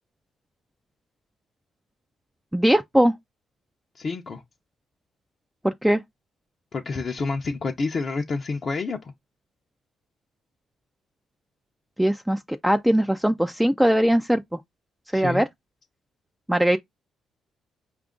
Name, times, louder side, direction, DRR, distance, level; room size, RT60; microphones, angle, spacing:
voice 1, 2.5-3.1 5.6-6.0 12.0-14.6 15.1-15.5 16.5-16.8, equal, 5° right, 0.3 m, -20 dB
voice 2, 3.9-4.4 6.7-9.1 15.1-15.5, left 4 dB, 45° left, 0.6 m, -28 dB
4.8 x 2.4 x 3.7 m
cardioid pair, 90°, 0 cm